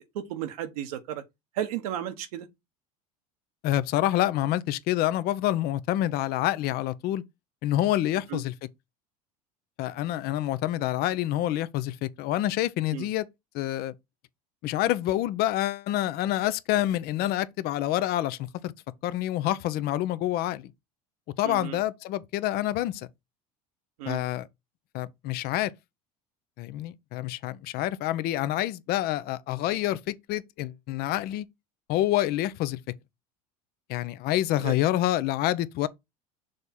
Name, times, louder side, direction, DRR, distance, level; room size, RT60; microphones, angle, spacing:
voice 1, 0.1-1.2 1.5-2.5 8.3-8.4 12.9-13.1 21.4-21.8 24.0-24.2 34.6-34.7, right 11 dB, 80° right, 1.1 m, -33 dB
voice 2, 3.6-7.2 7.6-8.5 9.8-13.3 13.5-13.9 14.6-18.7 19.0-20.7 21.4-23.1 24.1-24.5 24.9-25.7 26.6-31.5 31.9-32.8 33.9-35.9, left 14 dB, 55° left, 0.6 m, -27 dB
6.4 x 3.5 x 4.2 m
hypercardioid pair, 85°, 19 cm